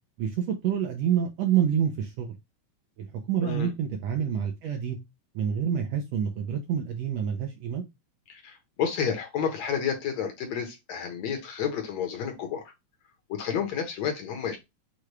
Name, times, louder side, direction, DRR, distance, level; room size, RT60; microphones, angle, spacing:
voice 1, 0.2-2.3 3.0-5.0 5.3-7.8, right 8 dB, 75° right, 1.5 m, -27 dB
voice 2, 8.3-12.7 13.3-14.6, left 7 dB, 70° left, 2.1 m, -30 dB
6.5 x 2.3 x 3.0 m
omnidirectional pair, 3.5 m